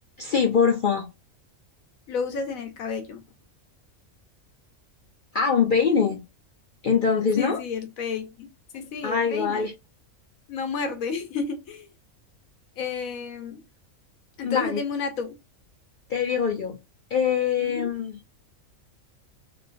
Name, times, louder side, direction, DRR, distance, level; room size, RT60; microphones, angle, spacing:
voice 1, 0.2-1.1 5.3-6.2 6.8-7.6 9.0-9.7 14.4-14.8 16.1-16.8 17.1-18.1, left 6 dB, 60° left, 0.5 m, -23 dB
voice 2, 2.1-3.2 7.4-8.5 8.7-9.7 10.5-11.9 12.8-13.6 14.4-15.4 17.6-17.9, left 5 dB, 85° left, 1.2 m, -31 dB
5.2 x 2.6 x 2.5 m
omnidirectional pair, 1.4 m